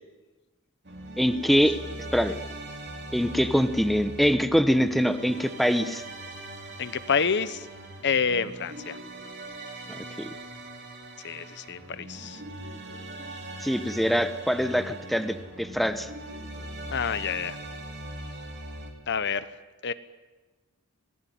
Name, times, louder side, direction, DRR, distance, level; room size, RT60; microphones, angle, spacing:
sound 1, 0.8-18.9, right 1 dB, 50° right, 4.0 m, -41 dB
voice 1, 1.2-1.8 2.1-2.3 3.1-6.0 9.9-10.3 13.6-16.1, equal, ahead, 9 dB, 1.0 m, -24 dB
voice 2, 6.8-7.7 8.0-9.0 11.2-12.4 16.9-17.6 19.1-19.5 19.8-19.9, left 6 dB, 55° left, 13 dB, 1.0 m, -28 dB
26.0 x 19.0 x 9.3 m, 1.2 s
head